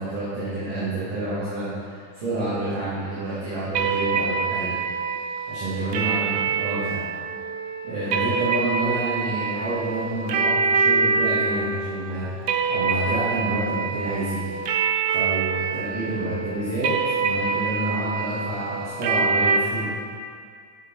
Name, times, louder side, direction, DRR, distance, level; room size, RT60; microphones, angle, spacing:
voice 1, 0.0-4.7 5.5-7.0 7.8-14.4 15.1-19.9, right 1 dB, 60° right, -10 dB, 2.6 m, -29 dB
sound 1, 3.7-19.6, right 5 dB, 90° right, 1.4 m, -25 dB
8.7 x 6.4 x 4.4 m, 2.2 s
omnidirectional pair, 3.8 m